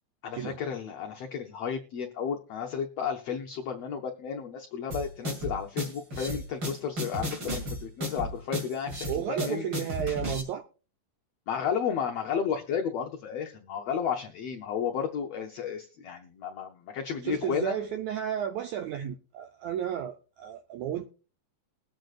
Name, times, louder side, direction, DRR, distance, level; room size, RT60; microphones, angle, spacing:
voice 1, 0.2-9.6 11.5-17.8, left 7 dB, 90° left, 1.4 m, -33 dB
sound 1, 4.9-10.4, left 1 dB, 35° right, 2.8 m, -34 dB
voice 2, 9.1-10.6 17.2-21.1, right 9 dB, 80° right, 1.6 m, -33 dB
21.5 x 7.8 x 2.4 m
omnidirectional pair, 4.0 m